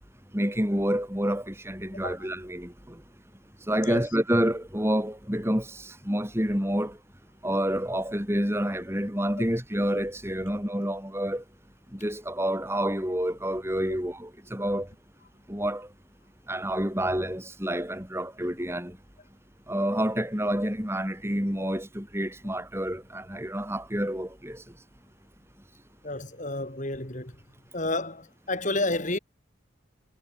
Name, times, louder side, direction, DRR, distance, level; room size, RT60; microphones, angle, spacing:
voice 1, 0.3-3.0 3.7-7.0 7.4-11.4 11.9-14.9 15.5-15.9 16.5-19.0 19.7-24.6, equal, 10° right, 5.7 m, -28 dB
voice 2, 26.0-27.4 27.7-29.2, left 2 dB, 35° left, 3.5 m, -31 dB
head